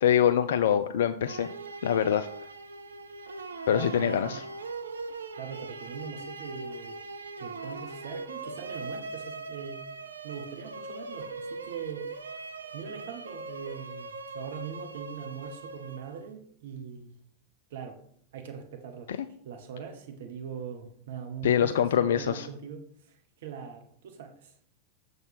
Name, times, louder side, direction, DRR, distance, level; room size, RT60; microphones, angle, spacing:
voice 1, 0.0-1.5 1.8-2.3 3.7-4.4 19.1-19.2 21.4-22.5, left 9 dB, 60° left, 10 dB, 0.3 m, -24 dB
sound 1, 1.3-16.3, right 3 dB, 75° right, 0.5 m, -40 dB
voice 2, 3.7-4.4 5.4-7.0 7.4-9.8 10.2-12.1 12.7-17.1 17.7-18.0 18.3-24.5, right 7 dB, 55° right, 5 dB, 1.0 m, -42 dB
7.1 x 4.0 x 5.8 m, 0.63 s
figure-of-eight pair, 90°, 0 cm